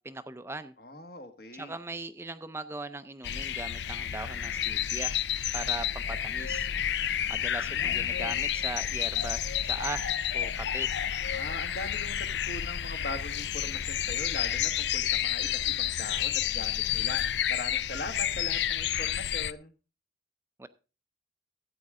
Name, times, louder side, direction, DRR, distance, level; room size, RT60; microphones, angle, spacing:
voice 1, 0.0-0.7 1.5-5.2 5.5-6.9 7.3-10.9 20.6-20.7, right 2 dB, 15° right, 11 dB, 0.5 m, -39 dB
voice 2, 0.8-1.7 7.6-8.4 11.3-19.7, left 2 dB, 60° left, 7 dB, 1.4 m, -41 dB
sound 1, 3.2-19.5, left 10 dB, 80° left, 0.4 m, -30 dB
13.5 x 8.8 x 3.7 m, 0.32 s
head